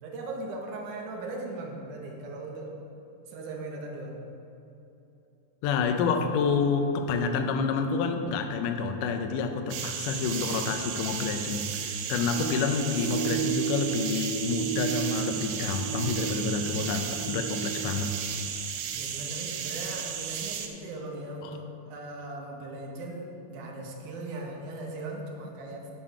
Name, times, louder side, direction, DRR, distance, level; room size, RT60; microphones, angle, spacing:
voice 1, 0.0-2.8 3.3-4.2 18.9-25.9, right 2 dB, 70° right, 0 dB, 2.0 m, -38 dB
voice 2, 5.6-18.1 21.4-21.6, left 5 dB, 80° left, 6 dB, 1.9 m, -28 dB
sound 1, 9.7-20.7, right 8 dB, 90° right, 1.8 m, -34 dB
sound 2, 12.3-17.9, right 10 dB, 25° right, 1.0 m, -34 dB
9.9 x 4.5 x 6.4 m, 2.9 s
omnidirectional pair, 4.4 m